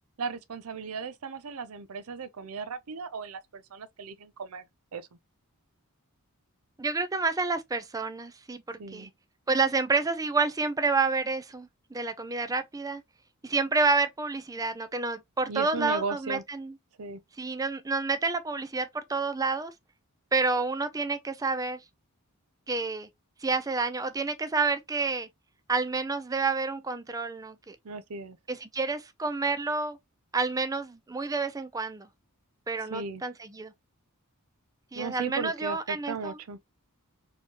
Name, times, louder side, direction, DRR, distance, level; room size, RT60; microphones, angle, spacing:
voice 1, 0.2-4.6 4.9-5.1 8.8-9.1 15.5-16.4 17.0-17.2 27.8-28.4 32.9-33.2 34.9-36.6, right 5 dB, 75° right, 0.6 m, -36 dB
voice 2, 6.8-9.1 9.5-13.0 13.4-16.7 17.4-19.7 20.3-21.8 22.7-23.1 23.4-25.3 25.7-27.8 28.5-30.0 30.3-32.1 32.7-33.7 34.9-36.4, right 4 dB, 15° right, 0.5 m, -29 dB
4.4 x 2.9 x 2.9 m
head